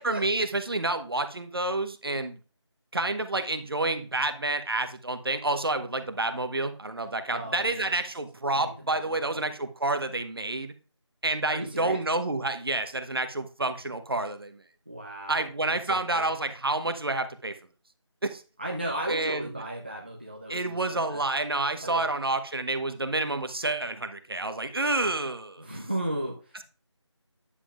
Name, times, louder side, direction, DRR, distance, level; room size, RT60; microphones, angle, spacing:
voice 1, 0.0-2.4 2.9-10.7 11.2-14.6 15.3-17.5 18.2-18.4 19.1-19.5 20.5-25.7, right 2 dB, 50° right, 8 dB, 1.0 m, -29 dB
voice 2, 7.3-7.9 8.5-9.4 11.5-12.0 14.9-15.5 15.8-16.3 18.6-21.2 21.8-22.1 25.6-26.6, right 1 dB, 20° right, -1 dB, 0.6 m, -35 dB
9.9 x 7.4 x 2.5 m, 0.36 s
figure-of-eight pair, 175°, 15 cm